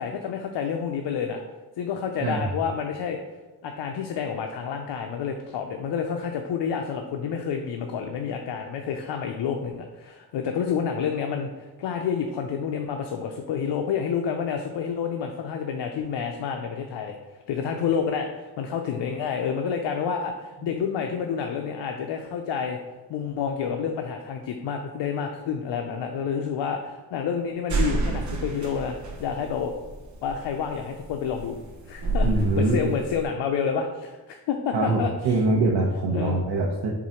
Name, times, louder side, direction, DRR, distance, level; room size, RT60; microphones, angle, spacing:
voice 1, 0.0-1.4 1.8-3.2 3.6-17.1 17.5-22.8 23.1-29.7 30.2-31.6 31.9-35.3 36.1-36.4, left 7 dB, 85° left, 3 dB, 0.6 m, -29 dB
sound 1, 27.7-33.2, right 2 dB, 45° right, 1.0 m, -29 dB
voice 2, 32.2-32.9 34.7-36.9, right 2 dB, 85° right, -2 dB, 0.9 m, -23 dB
4.8 x 3.8 x 5.6 m, 1.2 s
cardioid pair, 105°, 41 cm